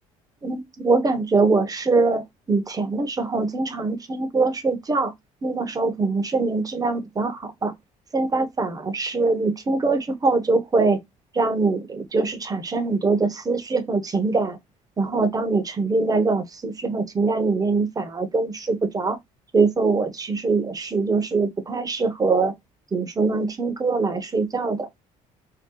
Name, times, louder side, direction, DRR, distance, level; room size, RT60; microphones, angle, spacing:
voice 1, 0.4-5.1 5.4-7.7 8.1-11.0 11.3-14.6 15.0-19.2 19.5-22.5 22.9-24.9, right 3 dB, 25° right, 0.7 m, -23 dB
2.8 x 2.2 x 3.7 m
supercardioid pair, 85°, 15 cm